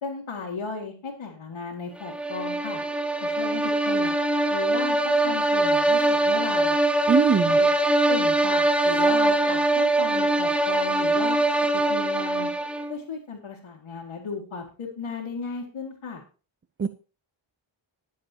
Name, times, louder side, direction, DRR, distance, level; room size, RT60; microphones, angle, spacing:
voice 1, 0.0-2.8 3.2-4.2 4.5-6.8 7.5-7.7 8.1-11.4 11.7-12.5 12.9-16.2, left 5 dB, 90° left, 2.0 m, -35 dB
sound 1, 2.0-13.0, right 2 dB, ahead, 0.9 m, -22 dB
voice 2, 7.1-7.6 16.8-16.9, right 6 dB, 25° right, 0.4 m, -21 dB
20.0 x 7.5 x 2.8 m
wide cardioid pair, 110°, 48 cm